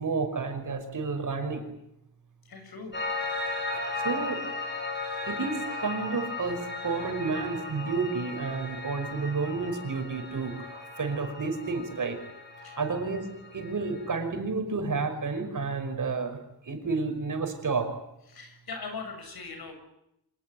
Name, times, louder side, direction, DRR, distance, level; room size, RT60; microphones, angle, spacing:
voice 1, 0.0-1.7 3.7-4.4 5.2-12.2 12.8-17.9, right 4 dB, 50° right, 5 dB, 5.6 m, -31 dB
voice 2, 2.5-2.9 12.6-12.8 18.3-19.7, left 4 dB, 70° left, 7 dB, 7.3 m, -40 dB
Piano, 2.9-14.2, left 3 dB, 25° left, 6.8 m, -36 dB
26.0 x 19.5 x 9.6 m, 0.82 s
wide cardioid pair, 155°, 39 cm